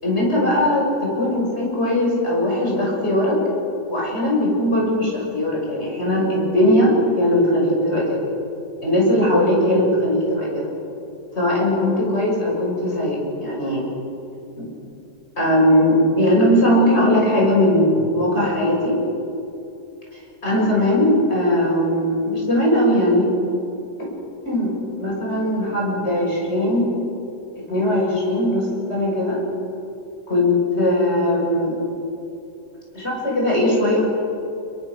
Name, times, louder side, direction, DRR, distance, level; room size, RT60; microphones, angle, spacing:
voice 1, 0.0-3.4 3.9-8.2 8.8-10.7 11.3-13.8 14.6-14.7 15.4-19.0 20.4-23.3 24.0-24.1 24.4-24.7 25.0-26.9 27.6-29.4 30.3-31.8 32.9-34.0, left 1 dB, 40° left, -2 dB, 6.6 m, -19 dB
27.0 x 22.5 x 6.4 m, 2.8 s
omnidirectional pair, 1.8 m